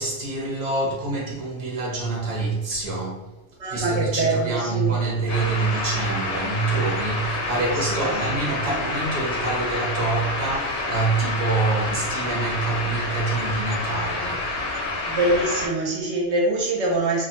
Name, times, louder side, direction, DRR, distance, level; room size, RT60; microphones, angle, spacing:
voice 1, 0.0-3.3 3.7-14.5, right 3 dB, 35° right, 0.7 m, -26 dB
voice 2, 3.6-5.0 7.4-8.8 15.1-17.3, right 2 dB, 70° right, 0.9 m, -25 dB
sound 1, 5.3-15.7, left 2 dB, 65° left, 0.8 m, -28 dB
2.3 x 2.1 x 2.8 m
omnidirectional pair, 1.2 m